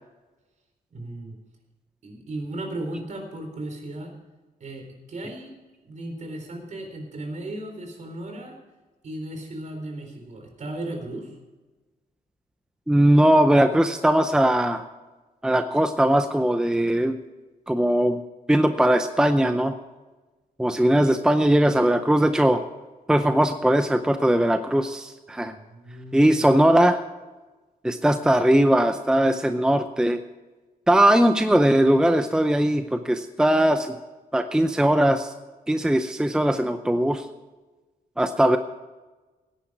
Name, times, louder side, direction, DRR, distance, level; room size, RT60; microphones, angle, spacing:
voice 1, 0.9-1.4 2.0-4.1 4.6-5.5 5.8-8.6 9.0-11.3 25.5-26.4, right 1 dB, 50° right, 4 dB, 4.0 m, -36 dB
voice 2, 12.9-14.8 15.4-17.2 17.7-18.2 18.5-19.7 20.6-22.6 23.1-25.5 26.1-27.0 27.8-30.2 30.9-34.0 34.3-35.3 35.7-37.3 38.2-38.6, right 1 dB, 5° right, 8 dB, 0.6 m, -20 dB
17.0 x 10.0 x 4.9 m, 1.2 s
wide cardioid pair, 150°, 15 cm